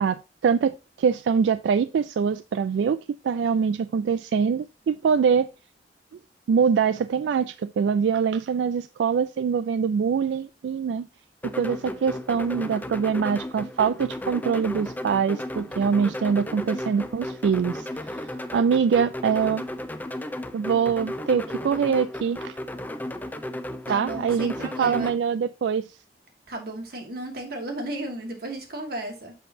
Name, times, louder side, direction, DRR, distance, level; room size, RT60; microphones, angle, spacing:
voice 1, 0.0-3.0 3.2-5.5 6.5-11.1 11.4-19.6 20.5-22.6 23.9-24.5 24.8-26.0, right 6 dB, 85° right, 0.3 m, -24 dB
sound 1, 11.4-25.1, left 1 dB, 10° left, 0.6 m, -34 dB
voice 2, 23.9-25.1 26.5-29.3, right 1 dB, 60° right, 1.9 m, -34 dB
7.0 x 5.9 x 2.7 m
head